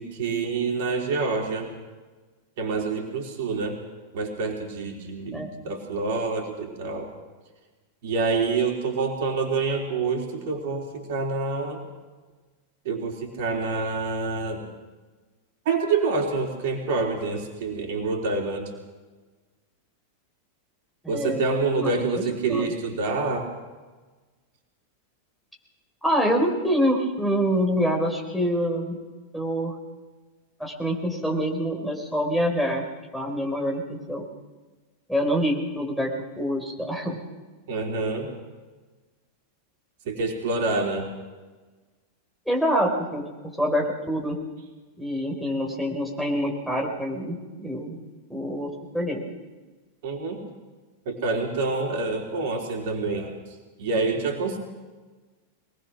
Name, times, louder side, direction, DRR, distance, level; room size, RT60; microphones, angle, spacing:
voice 1, 0.0-1.7 2.6-3.8 4.1-7.1 8.0-11.8 12.8-14.7 15.7-18.7 21.1-23.5 37.7-38.3 40.1-41.1 50.0-50.4 51.1-53.4 53.8-54.6, right 4 dB, 50° right, 1 dB, 3.7 m, -27 dB
voice 2, 21.0-21.9 22.5-22.7 26.0-29.0 29.3-29.7 30.6-32.8 33.1-34.2 35.1-36.1 36.4-37.2 42.5-43.2 43.6-44.4 45.0-48.0 48.3-49.2, equal, ahead, 0 dB, 4.3 m, -26 dB
23.5 x 19.5 x 6.2 m, 1.3 s
figure-of-eight pair, 90°, 0 cm